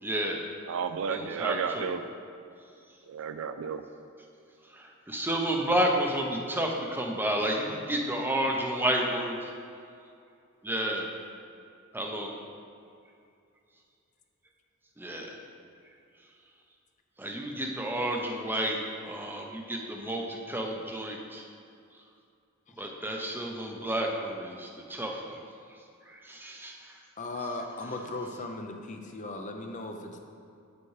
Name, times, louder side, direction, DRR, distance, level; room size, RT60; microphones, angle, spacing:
voice 1, 0.0-0.4 1.1-1.9 4.7-9.5 10.6-11.1 11.9-12.4 15.0-15.4 17.2-21.5 22.8-25.4 26.0-27.0, right 1 dB, 10° right, 1 dB, 0.7 m, -31 dB
voice 2, 0.7-2.0 3.1-3.8, right 6 dB, 65° right, 9 dB, 0.4 m, -32 dB
voice 3, 27.2-30.2, left 2 dB, 35° left, 4 dB, 0.6 m, -37 dB
8.6 x 7.0 x 3.2 m, 2.4 s
head